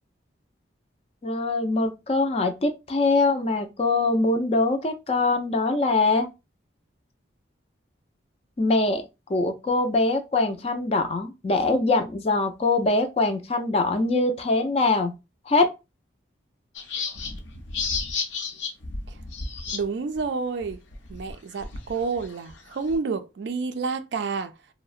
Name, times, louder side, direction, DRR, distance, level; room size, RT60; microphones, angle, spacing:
voice 1, 1.2-6.3 8.6-9.0 9.3-15.1 15.5-15.7, left 3 dB, 30° left, 0.4 m, -23 dB
sound 1, 16.7-19.8 20.2-20.3 20.6-23.0, left 4 dB, 75° left, 0.6 m, -32 dB
voice 2, 19.7-20.8 21.1-24.5, right 4 dB, 65° right, 0.3 m, -29 dB
2.7 x 2.0 x 2.4 m
head